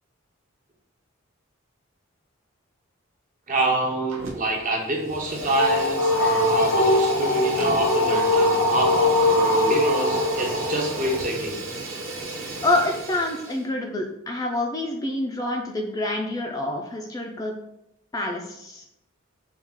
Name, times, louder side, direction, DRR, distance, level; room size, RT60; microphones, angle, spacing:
voice 1, 3.5-11.6, right 1 dB, 40° right, 1 dB, 0.8 m, -26 dB
Fire, 4.1-4.6 4.9-13.7, right 3 dB, 75° right, 0.8 m, -35 dB
sound 1, 5.1-11.2, left 2 dB, 85° left, 0.9 m, -22 dB
voice 2, 12.6-17.5 18.1-18.8, left 2 dB, 20° left, 1 dB, 0.4 m, -27 dB
4.6 x 2.3 x 3.6 m, 0.81 s
head